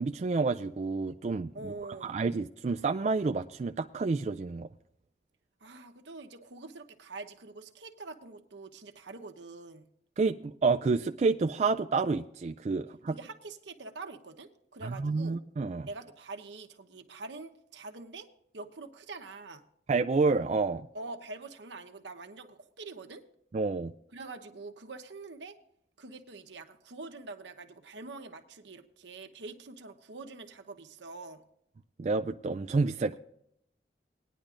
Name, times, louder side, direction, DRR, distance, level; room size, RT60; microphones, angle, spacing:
voice 1, 0.0-1.7 2.0-4.7 10.2-13.1 14.8-15.9 19.9-20.9 23.5-23.9 32.0-33.2, right 4 dB, 40° right, 5 dB, 0.3 m, -29 dB
voice 2, 1.5-2.2 5.6-9.9 13.1-15.4 15.9-18.3 18.5-19.6 20.9-23.2 24.1-25.5 26.0-31.4, right 3 dB, 80° right, 5 dB, 1.0 m, -45 dB
19.5 x 10.0 x 2.5 m, 0.73 s
head